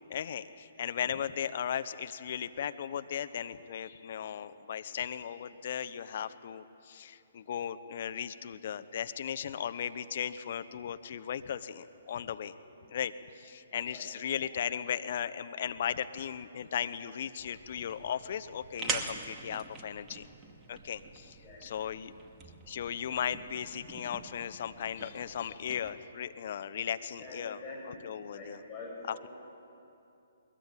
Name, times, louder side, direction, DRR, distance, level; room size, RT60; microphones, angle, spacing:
voice 1, 0.1-12.5 12.9-20.3 20.7-22.1 22.7-27.6 27.9-28.6, left 9 dB, 50° left, 12 dB, 1.0 m, -37 dB
sound 1, 17.4-25.9, right 4 dB, 20° right, 2.2 m, -44 dB
voice 2, 27.2-28.0 28.3-29.3, left 2 dB, 25° left, -4 dB, 7.2 m, -46 dB
22.5 x 22.5 x 9.1 m, 2.7 s
figure-of-eight pair, 130°, 0 cm